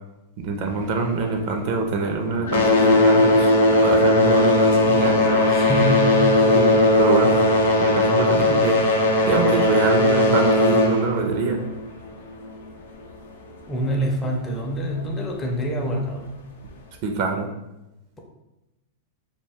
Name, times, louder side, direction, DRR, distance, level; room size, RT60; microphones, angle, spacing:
voice 1, 0.4-5.5 6.5-7.4 7.8-8.8 9.3-11.6 17.0-17.5, right 4 dB, 50° right, 3 dB, 0.4 m, -25 dB
sound 1, 0.7-2.0 2.3-12.6 13.5-13.6 14.3-14.4 15.0-15.1, left 2 dB, 80° left, 0.4 m, -18 dB
voice 2, 5.5-6.8 13.7-16.3, equal, 15° left, 0 dB, 0.5 m, -26 dB
2.3 x 2.2 x 3.4 m, 0.96 s
hypercardioid pair, 125°, 0 cm